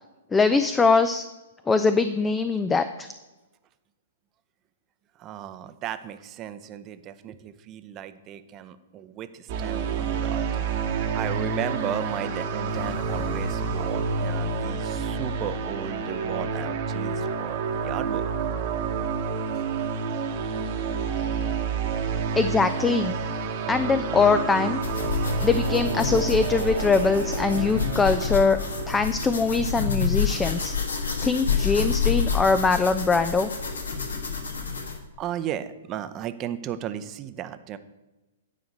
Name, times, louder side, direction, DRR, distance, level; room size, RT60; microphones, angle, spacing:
voice 1, 0.3-1.2 1.7-3.1 22.3-23.1 23.7-24.8 25.4-28.6 28.9-30.7 31.2-33.5, left 4 dB, 10° left, 10 dB, 0.4 m, -22 dB
voice 2, 5.2-10.7 11.1-18.2 35.2-37.8, right 10 dB, 30° right, 11 dB, 0.7 m, -35 dB
sound 1, 9.5-29.0, right 5 dB, 45° right, 1.2 m, -29 dB
sound 2, 12.7-20.6, left 5 dB, 45° left, 1.2 m, -42 dB
sound 3, 24.8-35.0, left 6 dB, 75° left, 1.6 m, -28 dB
9.7 x 5.0 x 7.8 m, 1.1 s
figure-of-eight pair, 110°, 0 cm